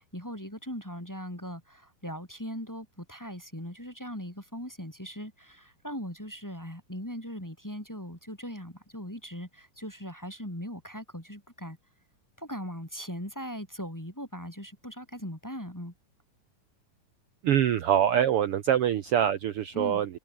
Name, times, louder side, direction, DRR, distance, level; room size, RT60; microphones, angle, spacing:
voice 1, 0.0-11.8 12.4-15.9 19.7-20.0, equal, 5° left, 2.4 m, -39 dB
voice 2, 17.4-20.2, right 10 dB, 80° right, 1.3 m, -24 dB
omnidirectional pair, 4.0 m